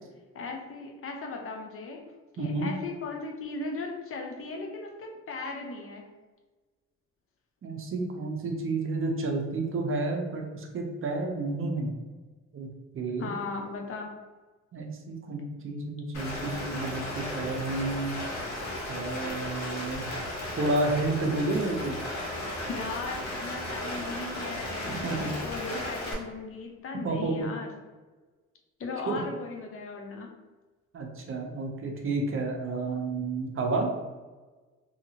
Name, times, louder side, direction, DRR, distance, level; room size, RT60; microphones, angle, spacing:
voice 1, 0.3-6.1 13.2-14.2 22.7-27.7 28.8-30.3, left 3 dB, 45° left, 2 dB, 0.6 m, -37 dB
voice 2, 2.4-2.7 7.6-11.9 12.5-12.7 12.9-13.3 14.7-18.2 18.9-20.1 20.6-22.0 24.9-25.3 27.0-27.5 29.1-29.2 30.9-33.9, right 2 dB, 45° right, 2 dB, 0.6 m, -30 dB
Rain, 16.1-26.1, left 1 dB, 65° left, 1.1 m, -35 dB
2.8 x 2.6 x 2.8 m, 1.3 s
cardioid pair, 90°, 30 cm